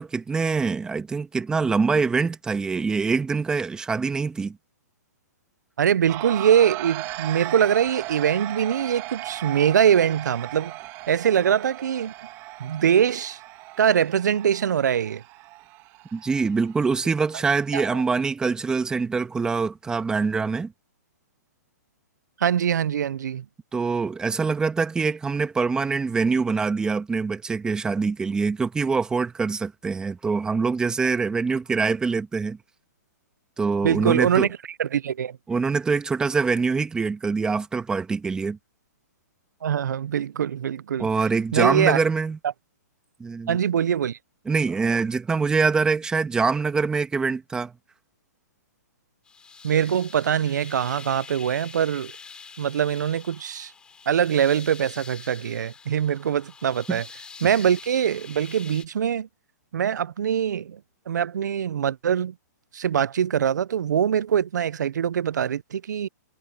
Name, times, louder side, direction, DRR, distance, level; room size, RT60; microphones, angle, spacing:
voice 1, 0.0-4.6 16.1-20.7 23.7-32.6 33.6-34.5 35.5-38.6 41.0-42.4 43.2-43.6 44.4-47.7 56.9-57.0, right 4 dB, 10° right, 1.5 m, -24 dB
voice 2, 5.8-10.7 11.1-12.1 12.6-13.4 13.8-15.2 17.7-18.0 22.4-23.4 33.8-34.5 34.8-35.4 39.6-41.1 41.5-42.0 43.5-44.2 49.6-52.1 52.6-53.7 54.1-57.0 57.4-59.3 59.7-60.8 61.1-62.3 62.7-66.1, right 8 dB, 80° right, 0.6 m, -23 dB
sound 1, 6.1-18.0, right 19 dB, 25° right, 1.9 m, -37 dB
sound 2, 49.3-58.9, left 5 dB, 10° left, 6.0 m, -45 dB
hypercardioid pair, 155°, 10 cm